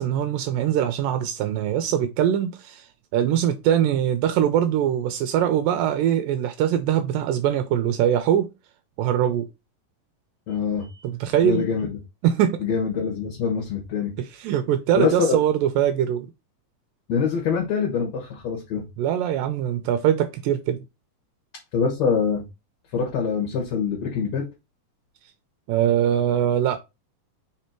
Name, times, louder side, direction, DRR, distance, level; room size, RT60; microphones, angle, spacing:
voice 1, 0.0-8.5 9.0-9.5 11.0-11.6 12.2-12.6 14.2-16.3 19.0-20.8 25.7-26.8, right 10 dB, 80° right, 2.2 m, -22 dB
voice 2, 10.5-11.0 11.4-12.0 12.6-14.1 15.0-15.4 17.1-18.9 21.7-22.4 22.9-24.5, left 6 dB, 60° left, 2.3 m, -24 dB
5.1 x 4.2 x 4.4 m
omnidirectional pair, 4.1 m